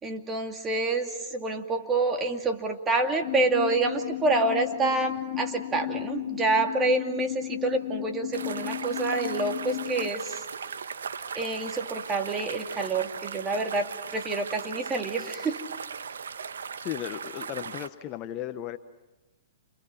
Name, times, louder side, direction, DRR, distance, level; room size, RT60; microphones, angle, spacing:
voice 1, 0.0-10.4 11.3-15.6, right 3 dB, 15° right, 4 dB, 2.5 m, -27 dB
sound 1, 3.2-10.1, left 17 dB, 55° left, 0.8 m, -34 dB
sound 2, 8.3-17.9, right 6 dB, 85° right, 1.3 m, -38 dB
voice 2, 16.8-18.8, left 12 dB, 35° left, 10 dB, 1.0 m, -35 dB
30.0 x 28.0 x 5.8 m, 1.0 s
hypercardioid pair, 135°, 0 cm